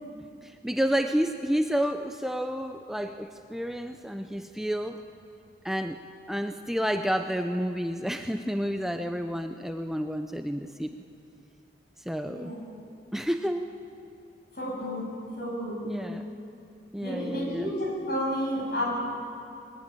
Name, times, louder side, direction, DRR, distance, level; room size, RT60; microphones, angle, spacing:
voice 1, 0.4-5.0 5.6-6.0 6.3-11.0 12.0-12.5 13.1-13.7 15.8-16.2 16.9-17.7, equal, ahead, 6 dB, 0.5 m, -30 dB
voice 2, 12.2-12.6 14.5-15.1 15.4-16.1 17.0-18.9, equal, 60° left, -2 dB, 7.4 m, -31 dB
21.5 x 19.0 x 8.9 m, 2.6 s
head